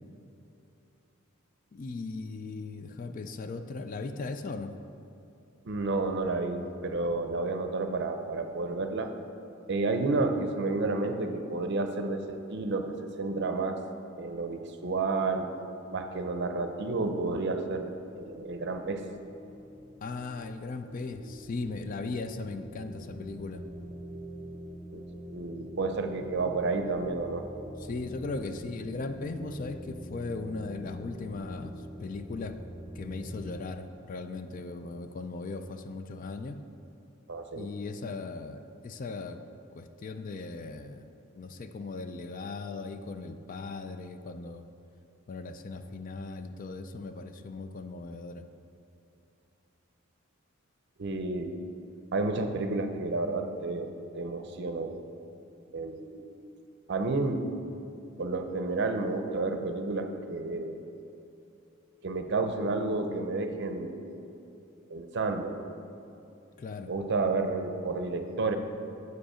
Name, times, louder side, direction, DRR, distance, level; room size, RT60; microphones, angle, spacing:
voice 1, 1.7-4.7 20.0-23.6 27.8-31.7 32.0-32.6 32.9-36.6 37.5-39.4 39.7-41.0 41.3-44.7 45.3-48.5 66.6-66.9, left 3 dB, 40° left, 8 dB, 0.4 m, -38 dB
voice 2, 5.7-9.1 9.7-13.8 14.2-15.6 15.9-19.1 24.9-25.0 25.3-27.5 37.3-37.7 51.0-51.6 52.1-54.9 55.7-56.4 56.9-57.5 58.2-60.8 62.0-64.3 64.9-65.6 66.9-68.6, right 3 dB, 55° right, 6 dB, 0.6 m, -31 dB
sound 1, 17.6-33.5, equal, 5° right, 1.2 m, -45 dB
8.1 x 5.1 x 5.0 m, 2.8 s
head